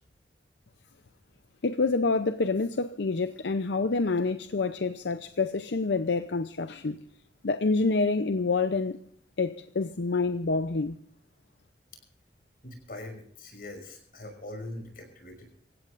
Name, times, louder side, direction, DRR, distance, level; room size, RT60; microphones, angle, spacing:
voice 1, 1.6-7.1 7.4-9.0 9.4-11.0, left 3 dB, 80° left, 0.6 m, -27 dB
voice 2, 12.6-15.5, left 1 dB, 55° left, 5.9 m, -42 dB
25.5 x 16.0 x 2.5 m
head